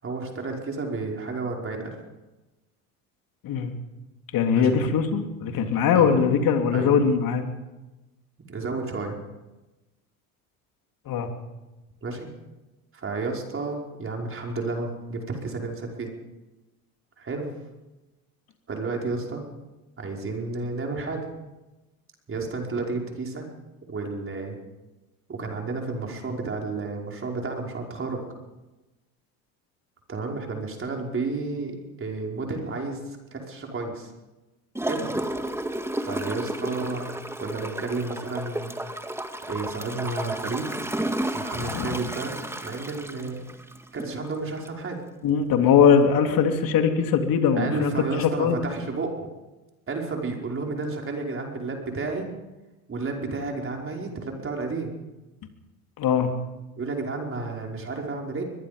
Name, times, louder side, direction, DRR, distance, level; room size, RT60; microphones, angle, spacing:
voice 1, 0.0-2.0 4.5-4.8 5.9-6.2 6.7-7.0 8.5-9.2 12.0-12.3 12.9-16.1 17.2-17.5 18.7-19.4 20.0-21.2 22.3-23.5 23.9-24.6 25.3-28.2 30.1-34.1 34.9-35.1 36.0-38.7 39.5-40.7 41.3-42.3 42.6-43.4 43.9-45.0 47.6-49.3 49.9-52.3 52.9-54.9 56.8-58.4, right 3 dB, 30° right, 1 dB, 5.3 m, -31 dB
voice 2, 4.3-7.4 11.1-11.3 41.6-41.9 45.2-47.9 48.2-48.6 56.0-56.3, left 7 dB, 50° left, 5 dB, 3.3 m, -21 dB
Gurgling / Toilet flush, 34.7-44.2 44.6-44.7, right 1 dB, 5° right, 2.1 m, -32 dB
23.5 x 22.0 x 5.3 m, 1.1 s
hypercardioid pair, 75°, 43 cm